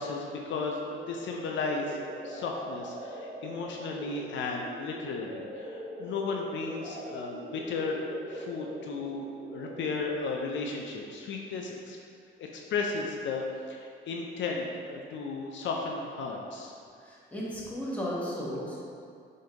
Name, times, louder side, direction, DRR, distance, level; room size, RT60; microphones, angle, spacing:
voice 1, 0.0-2.0 2.2-12.0 12.4-16.7, left 4 dB, 70° left, 0 dB, 0.5 m, -34 dB
sound 1, 0.7-10.7, right 1 dB, 50° right, 1.2 m, -43 dB
voice 2, 17.0-18.8, equal, 5° left, -7 dB, 1.2 m, -34 dB
5.0 x 2.7 x 3.8 m, 2.4 s
cardioid pair, 90°, 20 cm